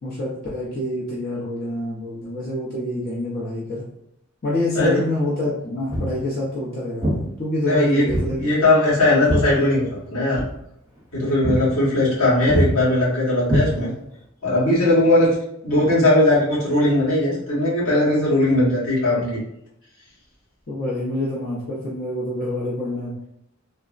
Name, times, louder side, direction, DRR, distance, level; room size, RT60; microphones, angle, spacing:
voice 1, 0.0-3.8 4.4-8.4 20.7-23.1, left 1 dB, 45° left, -7 dB, 0.6 m, -27 dB
Walk footsteps, 5.9-6.2 7.0-7.2 8.1-8.3 8.6-10.1 10.3-10.5 11.0-11.1 11.4-11.6 11.9-12.2 12.5-12.7 13.4-14.1, equal, 15° right, 0.8 m, -23 dB
voice 2, 7.7-8.0 8.4-10.4 11.1-13.9 14.4-15.3 15.6-19.4, left 1 dB, 75° left, -7 dB, 1.3 m, -19 dB
3.3 x 2.0 x 2.4 m, 0.78 s
head